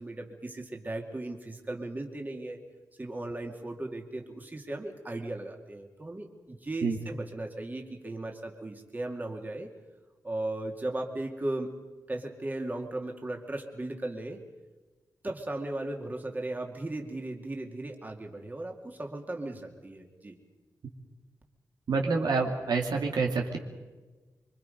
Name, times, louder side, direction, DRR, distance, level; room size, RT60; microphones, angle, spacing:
voice 1, 0.0-2.6 3.0-9.7 10.2-11.7 12.1-14.4 15.2-20.4, right 2 dB, 25° right, 2 dB, 2.3 m, -37 dB
voice 2, 21.9-23.6, right 4 dB, 80° right, 1 dB, 2.5 m, -27 dB
25.0 x 24.5 x 5.3 m, 1.3 s
wide cardioid pair, 105°, 7 cm